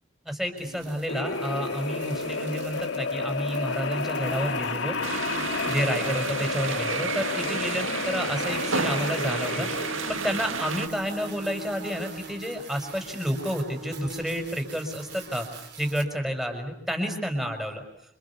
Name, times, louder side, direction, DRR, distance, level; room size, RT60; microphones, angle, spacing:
voice 1, 0.3-5.0 5.7-17.8, equal, ahead, 4 dB, 5.8 m, -30 dB
sound 1, 0.6-16.0, right 2 dB, 60° right, 4.9 m, -43 dB
sound 2, 1.1-15.6, left 4 dB, 75° left, 2.1 m, -31 dB
sound 3, 5.0-10.9, right 5 dB, 80° right, 2.0 m, -31 dB
29.5 x 27.0 x 7.2 m, 0.77 s
head